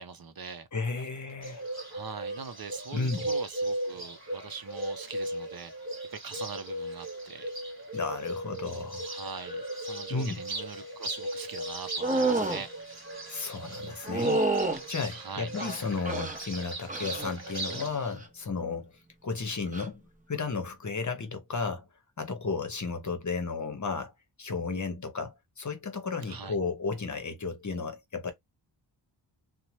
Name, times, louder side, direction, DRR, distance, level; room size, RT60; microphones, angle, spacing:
voice 1, 0.0-0.7 1.9-5.7 6.1-7.5 9.1-12.7 15.1-15.5 26.3-26.6, right 5 dB, 50° right, 0.6 m, -42 dB
voice 2, 0.7-1.7 2.9-3.2 7.9-9.1 10.1-10.4 13.3-18.9 19.2-21.9 22.2-24.1 24.4-28.3, left 4 dB, 40° left, 0.9 m, -33 dB
Bird, 1.4-17.9, right 1 dB, 35° right, 1.4 m, -37 dB
sound 1, 12.0-12.6 14.1-14.8 15.6-16.4 16.9-17.3 17.7-18.1 19.7-19.9, right 2 dB, 15° right, 0.8 m, -28 dB
2.7 x 2.2 x 3.0 m
wide cardioid pair, 70°, 45 cm